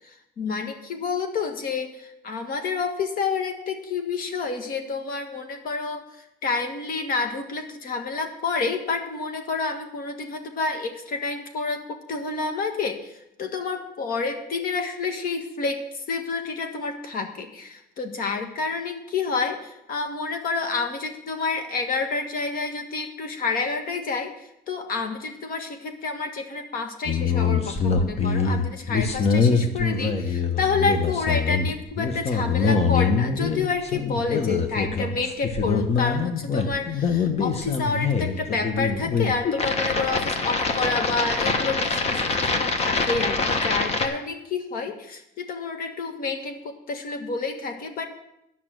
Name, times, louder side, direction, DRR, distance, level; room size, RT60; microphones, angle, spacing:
voice 1, 0.4-6.0 6.4-24.3 24.7-48.1, left 4 dB, 50° left, 6 dB, 1.6 m, -29 dB
sound 1, 27.1-44.1, left 5 dB, 35° left, 1.1 m, -24 dB
11.0 x 5.9 x 7.7 m, 0.83 s
cardioid pair, 125°, 19 cm